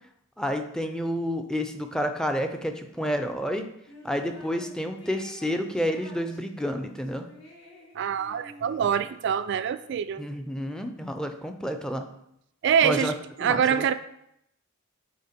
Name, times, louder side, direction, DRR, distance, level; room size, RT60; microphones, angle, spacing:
voice 1, 0.4-3.7 4.0-7.3 10.2-12.1 12.8-13.1 13.4-13.9, equal, 5° left, 6 dB, 0.5 m, -30 dB
sound 1, 3.9-4.7 5.0-9.6, left 1 dB, 65° left, 1.5 m, -49 dB
voice 2, 8.0-10.2 12.6-13.1 13.4-13.9, right 8 dB, 60° right, 11 dB, 0.3 m, -24 dB
8.7 x 3.3 x 4.3 m, 0.76 s
head